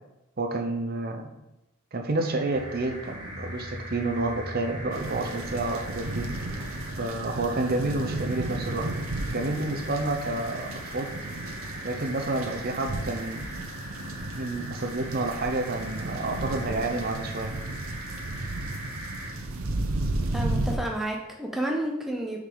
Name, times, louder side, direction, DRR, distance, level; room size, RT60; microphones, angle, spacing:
voice 1, 0.4-1.2 1.9-6.3 7.0-8.9 9.3-11.1 11.8-13.6 14.3-17.5, right 2 dB, 45° right, 4 dB, 0.7 m, -29 dB
sound 1, 2.1-19.5, right 1 dB, 20° right, 2.1 m, -42 dB
sound 2, 2.5-14.4, equal, 40° left, 1.7 m, -45 dB
sound 3, 4.9-20.8, right 2 dB, 80° right, 0.8 m, -34 dB
voice 2, 20.3-22.4, right 1 dB, ahead, 0 dB, 0.7 m, -30 dB
6.4 x 4.9 x 3.9 m, 0.92 s
head